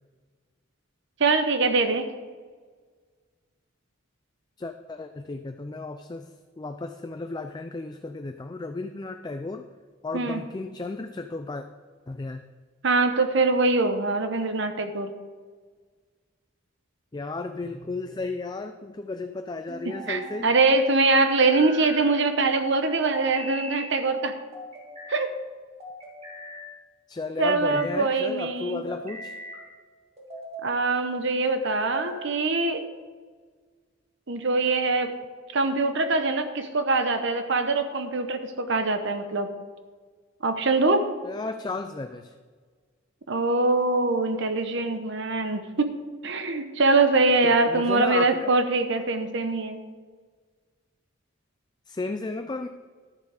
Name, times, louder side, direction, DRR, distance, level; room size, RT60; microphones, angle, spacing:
voice 1, 1.2-2.1 10.1-10.4 12.8-15.1 20.1-24.4 25.1-25.3 27.4-28.8 30.6-32.8 34.3-35.1 35.5-39.5 40.4-41.1 43.3-46.0 46.2-49.8, right 3 dB, 60° right, 8 dB, 0.9 m, -23 dB
voice 2, 4.6-9.7 10.0-11.7 12.1-12.4 17.1-20.5 27.1-29.4 41.2-42.3 47.4-48.5 51.9-52.7, left 3 dB, 20° left, 6 dB, 0.4 m, -34 dB
sound 1, 17.6-18.3 19.7-20.4 21.3-22.1 23.1-23.9 24.5-25.2 25.8-26.7 27.3-27.9 28.7-29.6 30.2-30.7 31.4-32.3, right 1 dB, 30° right, 2.1 m, -40 dB
12.0 x 7.1 x 4.8 m, 1.5 s
head